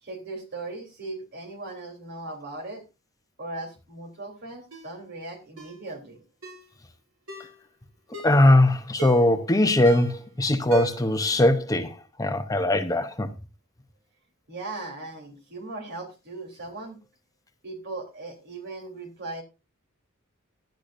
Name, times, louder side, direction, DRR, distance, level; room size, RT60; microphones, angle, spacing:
voice 1, 0.0-2.8 3.4-6.2 14.5-17.0 17.6-19.4, right 2 dB, 50° right, 3.4 m, -38 dB
Ringtone, 4.7-4.9 5.6-5.8 6.4-6.7 7.3-7.6 8.1-8.4 9.0-9.4 9.8-10.2 10.7-11.2 11.5-11.6, right 6 dB, 75° right, 6.7 m, -35 dB
voice 2, 8.2-13.3, left 1 dB, 15° left, 0.8 m, -21 dB
16.5 x 11.5 x 2.6 m
head